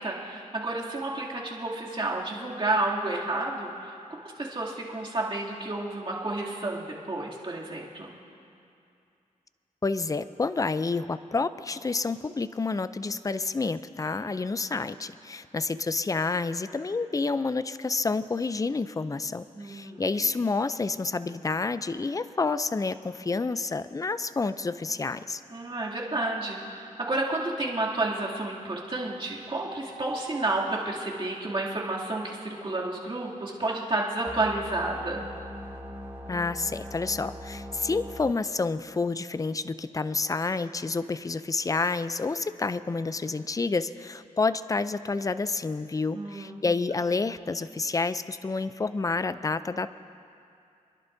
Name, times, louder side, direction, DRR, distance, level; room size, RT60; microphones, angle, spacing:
voice 1, 0.0-8.1 19.5-20.3 25.5-35.2 46.1-46.7, right 2 dB, 35° right, -5 dB, 2.7 m, -31 dB
voice 2, 9.8-25.4 36.3-49.9, left 3 dB, 25° left, 13 dB, 0.4 m, -29 dB
sound 1, 34.3-38.3, left 1 dB, 15° right, 1.2 m, -40 dB
27.5 x 11.0 x 2.7 m, 2.5 s
cardioid pair, 65°, 14 cm